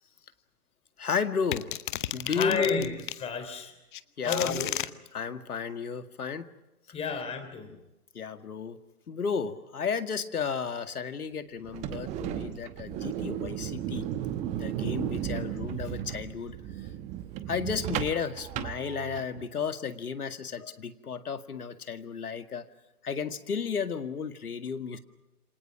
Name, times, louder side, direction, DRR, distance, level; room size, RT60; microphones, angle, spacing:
voice 1, 1.0-1.7 2.1-2.9 4.2-4.5 5.1-6.5 8.1-8.8 9.1-14.1 14.6-16.6 17.5-22.7 23.0-25.0, left 6 dB, 70° left, 9 dB, 2.1 m, -33 dB
sound 1, 1.5-3.2 3.9-4.9, left 12 dB, 35° left, 0.9 m, -33 dB
voice 2, 2.2-3.7 4.2-4.7 6.9-7.8, left 5 dB, 15° left, 7 dB, 3.3 m, -31 dB
sound 2, 11.6-19.5, right 11 dB, 15° right, 1.0 m, -35 dB
28.0 x 26.0 x 6.0 m, 0.98 s
figure-of-eight pair, 135°, 46 cm